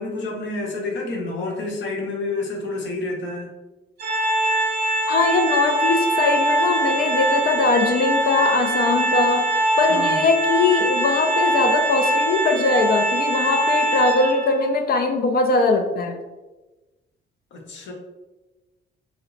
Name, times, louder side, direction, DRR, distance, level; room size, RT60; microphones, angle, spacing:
voice 1, 0.0-3.5 9.8-10.3 17.5-17.9, left 2 dB, 70° left, 0 dB, 0.9 m, -29 dB
Organ, 4.0-14.7, right 1 dB, 55° right, 0.7 m, -22 dB
voice 2, 5.1-16.2, left 3 dB, 50° left, 5 dB, 0.4 m, -21 dB
3.1 x 2.1 x 3.7 m, 1.1 s
cardioid pair, 90°, 20 cm